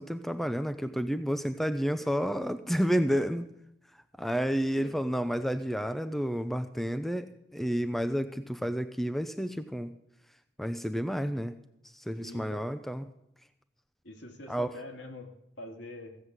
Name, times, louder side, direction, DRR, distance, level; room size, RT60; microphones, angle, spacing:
voice 1, 0.0-3.4 4.2-9.9 10.6-11.6 11.9-13.1 14.5-14.7, equal, ahead, 9 dB, 0.5 m, -30 dB
voice 2, 12.2-12.6 14.0-16.3, left 1 dB, 75° left, 3 dB, 2.3 m, -45 dB
15.5 x 7.5 x 8.1 m, 0.79 s
head